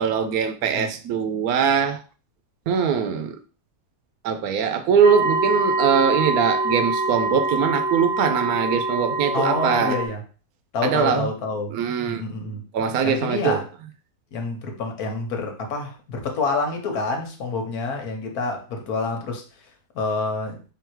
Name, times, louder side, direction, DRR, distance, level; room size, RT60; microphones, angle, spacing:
voice 1, 0.0-2.0 2.7-3.3 4.2-10.0 10.8-11.3 11.7-12.2 12.7-13.6, right 7 dB, 80° right, 1.1 m, -22 dB
voice 2, 0.6-1.0 9.3-10.2 10.7-11.8 12.0-12.6 13.0-13.7 14.3-19.4 19.9-20.6, left 3 dB, 85° left, 1.4 m, -27 dB
sound 1, 5.0-10.1, right 3 dB, 50° right, 0.8 m, -24 dB
3.8 x 2.8 x 4.5 m
omnidirectional pair, 1.6 m